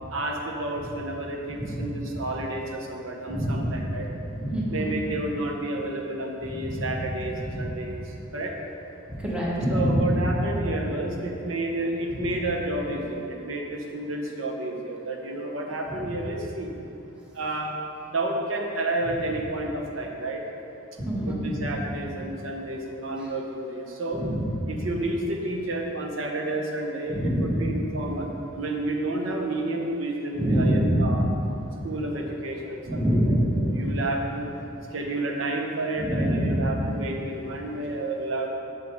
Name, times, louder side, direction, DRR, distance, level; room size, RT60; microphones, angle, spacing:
voice 1, 0.1-4.1 4.7-8.0 8.3-8.5 9.7-16.7 17.3-17.7 18.1-20.4 21.3-24.2 24.7-31.3 31.8-34.5 34.9-38.5, right 2 dB, 85° right, 1 dB, 1.0 m, -30 dB
voice 2, 1.5-2.1 3.3-3.9 4.3-4.9 6.4-6.9 7.3-7.7 9.1-10.4 12.1-12.3 15.9-16.1 21.0-21.8 23.2-23.3 24.1-24.7 27.1-27.7 30.3-31.2 32.9-33.8 36.0-36.7, equal, 5° right, -7 dB, 1.3 m, -26 dB
7.8 x 7.2 x 3.6 m, 2.8 s
head